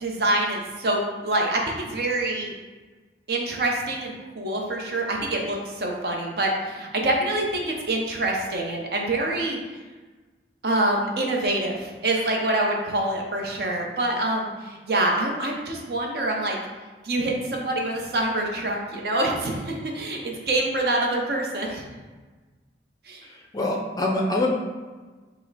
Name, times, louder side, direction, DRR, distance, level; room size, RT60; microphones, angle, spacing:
voice 1, 0.0-2.5 3.3-9.6 10.6-16.6 17.0-21.9 23.1-23.2, right 1 dB, 55° right, 0 dB, 0.7 m, -26 dB
voice 2, 23.2-24.5, left 2 dB, 20° left, 0 dB, 0.4 m, -25 dB
5.4 x 2.1 x 4.0 m, 1.3 s
head